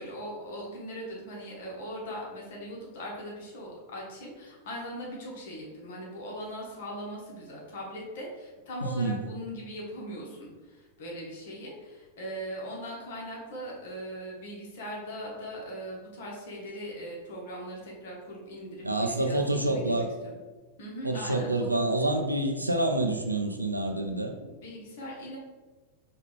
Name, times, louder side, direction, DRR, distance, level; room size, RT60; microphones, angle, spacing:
voice 1, 0.0-20.4 20.8-21.7 24.4-25.4, equal, 55° left, -2 dB, 1.1 m, -40 dB
voice 2, 8.8-9.2 18.8-20.1 21.0-24.3, right 2 dB, 85° right, 4 dB, 0.4 m, -27 dB
4.7 x 2.4 x 3.4 m, 1.3 s
figure-of-eight pair, 90°, 0 cm